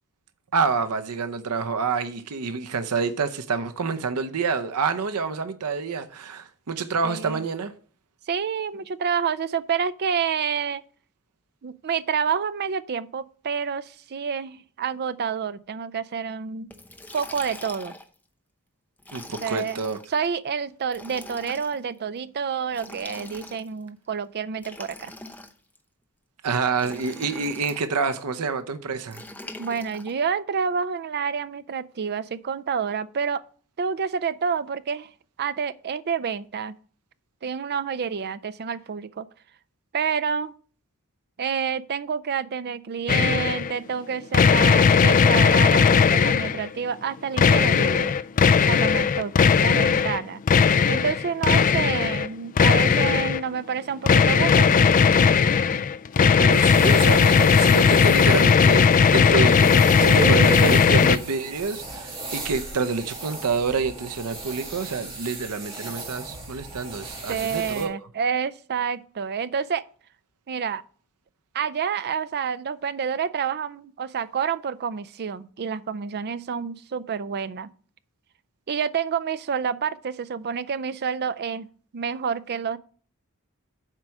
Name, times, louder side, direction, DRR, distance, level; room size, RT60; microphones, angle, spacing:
voice 1, 0.5-7.7 19.1-20.0 26.4-29.2 49.2-49.3 56.2-67.9, right 5 dB, 85° right, 0.7 m, -27 dB
voice 2, 7.0-7.4 8.3-10.8 11.6-16.7 17.1-17.9 19.4-19.8 20.1-25.1 29.6-33.4 33.8-35.1 35.4-36.7 37.4-39.3 39.9-40.5 41.4-48.2 48.6-50.4 50.9-55.3 60.0-60.8 67.3-69.8 70.5-70.8 71.5-77.7 78.7-81.7 81.9-82.8, right 6 dB, 50° right, 0.5 m, -28 dB
Liquid, 16.7-18.1 19.0-20.1 20.9-21.8 22.7-23.8 24.6-25.8 26.8-27.8 29.1-30.1, left 2 dB, 10° left, 0.7 m, -42 dB
sound 1, 43.1-43.7 44.3-46.7 47.4-50.2 50.5-52.3 52.6-53.4 54.1-61.2, left 6 dB, 35° left, 0.3 m, -18 dB
sound 2, 56.5-67.9, right 2 dB, 25° right, 2.4 m, -37 dB
7.4 x 4.8 x 6.3 m
head